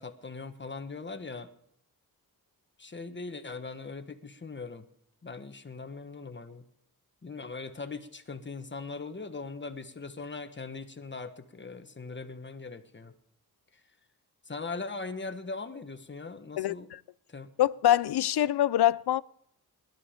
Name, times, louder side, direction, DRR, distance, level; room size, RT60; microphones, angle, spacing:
voice 1, 0.0-1.5 2.8-4.8 5.2-6.6 7.2-13.1 14.5-16.9 17.3-17.5, left 4 dB, 30° left, 1.3 m, -40 dB
voice 2, 17.6-19.2, left 12 dB, 85° left, 0.6 m, -24 dB
21.0 x 12.5 x 5.1 m
wide cardioid pair, 130°, 38 cm